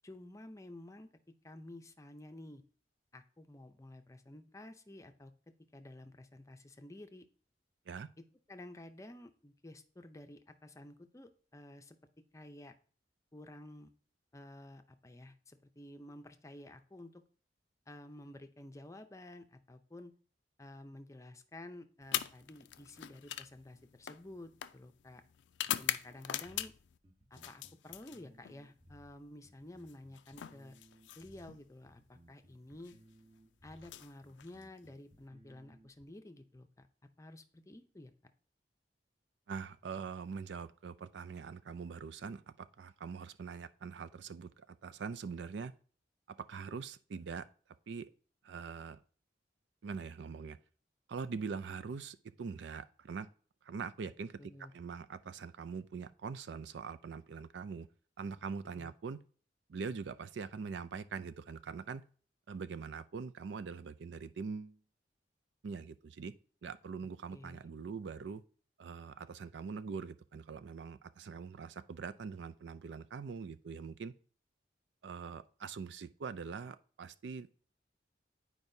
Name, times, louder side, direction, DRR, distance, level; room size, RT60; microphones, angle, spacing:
voice 1, 0.0-2.6 3.1-7.3 8.2-12.0 12.3-12.7 13.3-13.9 14.3-17.2 17.9-20.1 20.6-25.2 25.8-26.7 27.3-30.8 31.2-33.0 33.6-36.9 37.2-38.3 54.4-54.7 58.7-58.9 67.3-67.6, left 1 dB, 20° left, 0.6 m, -52 dB
sound 1, 22.0-27.0 27.3-28.6 29.8-31.6 32.7-33.0 33.7-34.9, left 12 dB, 85° left, 0.4 m, -41 dB
sound 2, 26.4-36.0, equal, 35° right, 1.2 m, -62 dB
voice 2, 39.5-45.7 46.5-47.5 47.9-48.1 48.4-49.0 49.8-50.6 51.1-53.3 53.6-54.4 54.7-57.9 58.2-59.2 59.7-62.0 62.5-64.8 65.6-66.3 66.6-68.4 68.8-74.1 75.0-77.5, right 5 dB, 75° right, 0.4 m, -43 dB
10.5 x 4.7 x 2.7 m
head